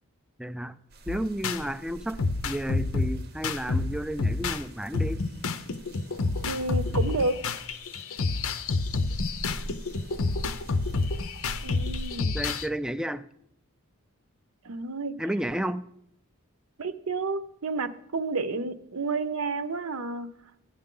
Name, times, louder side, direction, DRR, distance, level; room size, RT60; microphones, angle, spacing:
voice 1, 0.4-0.8 1.1-5.2 12.3-13.3 15.2-15.8, right 1 dB, 5° right, 11 dB, 0.3 m, -32 dB
sound 1, 0.9-12.2, right 1 dB, 45° right, 0.8 m, -43 dB
sound 2, 1.1-1.6 2.2-4.6 4.9-12.7, left 3 dB, 70° left, 0.7 m, -29 dB
voice 2, 6.5-7.4 11.6-12.4 14.6-15.2 16.8-20.3, right 3 dB, 75° right, 11 dB, 0.8 m, -30 dB
15.0 x 9.5 x 3.8 m, 0.76 s
head